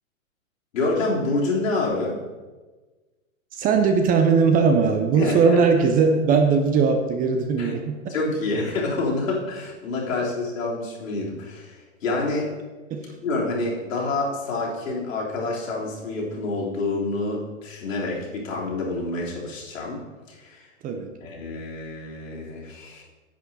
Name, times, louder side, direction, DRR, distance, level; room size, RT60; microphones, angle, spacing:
voice 1, 0.7-2.2 5.2-5.6 7.6-7.7 8.1-12.5 13.2-20.7 21.2-23.0, left 2 dB, 70° left, -4 dB, 3.4 m, -27 dB
voice 2, 3.5-8.1 12.9-13.0 20.8-21.1, right 5 dB, 20° right, 5 dB, 0.7 m, -19 dB
10.0 x 8.0 x 4.2 m, 1.3 s
hypercardioid pair, 120°, 41 cm